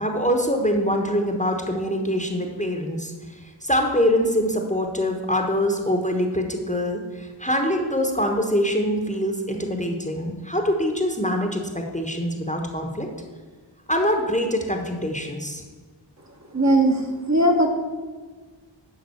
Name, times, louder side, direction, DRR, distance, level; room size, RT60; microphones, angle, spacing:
voice 1, 0.0-13.1 13.9-15.6, equal, 15° left, 2 dB, 1.2 m, -24 dB
voice 2, 16.5-17.7, right 1 dB, 35° right, 1 dB, 1.4 m, -19 dB
11.0 x 3.8 x 7.0 m, 1.4 s
wide cardioid pair, 40°, 47 cm